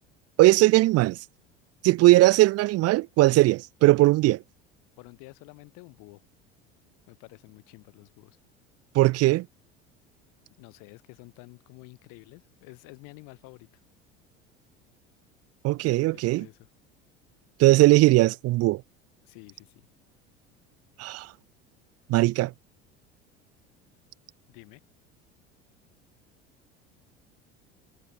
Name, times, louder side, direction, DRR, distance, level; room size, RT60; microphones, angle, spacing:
voice 1, 0.4-1.2 1.8-4.4 8.9-9.5 15.6-16.5 17.6-18.8 21.0-21.3 22.1-22.5, right 18 dB, 45° right, 0.5 m, -19 dB
voice 2, 5.0-6.2 7.1-8.4 10.6-13.7 15.8-16.7 19.2-19.9 24.5-24.8, left 26 dB, 65° left, 7.3 m, -50 dB
hypercardioid pair, 70°, 35 cm